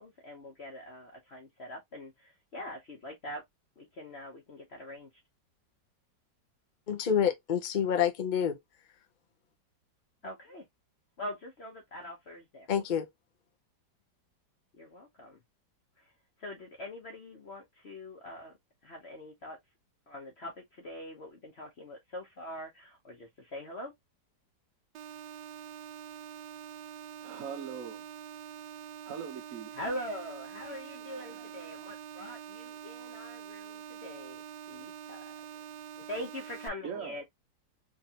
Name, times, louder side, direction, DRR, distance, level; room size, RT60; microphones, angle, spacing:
voice 1, 0.0-3.4 3.8-5.1 10.2-10.6 11.2-12.7 14.7-15.4 16.0-16.1 16.4-18.5 18.8-19.6 20.1-23.9 29.7-34.4 34.7-35.3 36.1-37.2, left 1 dB, 45° left, 0.9 m, -43 dB
voice 2, 6.9-8.6 12.7-13.1, left 8 dB, 65° left, 0.4 m, -28 dB
sound 1, 24.9-36.7, right 9 dB, 75° right, 1.2 m, -45 dB
voice 3, 27.2-28.0 29.0-29.7 31.1-31.5 36.8-37.2, right 7 dB, 60° right, 1.0 m, -41 dB
3.7 x 3.3 x 2.7 m
omnidirectional pair, 2.0 m